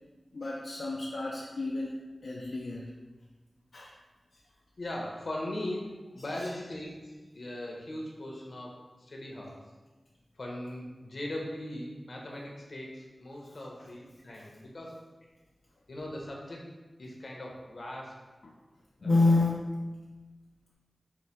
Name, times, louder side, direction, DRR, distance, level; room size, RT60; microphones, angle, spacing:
voice 1, 0.3-2.9 3.7-3.9 6.4-6.5 18.4-18.5 19.0-19.7, left 2 dB, 90° left, -4 dB, 0.4 m, -29 dB
voice 2, 4.8-9.6 10.4-15.0 15.9-16.7 17.0-18.2 19.0-19.1, left 1 dB, 70° left, -2 dB, 0.9 m, -39 dB
4.8 x 2.2 x 4.2 m, 1.2 s
wide cardioid pair, 60°, 0 cm